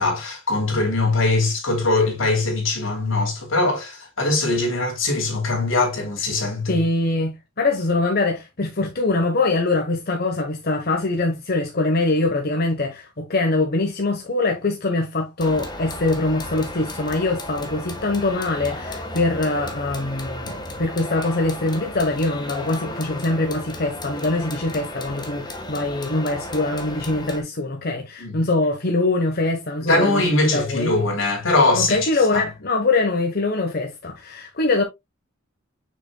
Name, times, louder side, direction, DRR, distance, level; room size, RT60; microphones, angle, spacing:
voice 1, 0.0-6.8 28.2-28.4 29.9-32.4, left 2 dB, 80° left, 3.1 m, -21 dB
voice 2, 6.7-31.0 31.7-34.8, left 2 dB, 50° left, 1.1 m, -23 dB
sound 1, 15.4-27.4, left 1 dB, 20° left, 1.3 m, -34 dB
6.7 x 6.1 x 2.3 m
head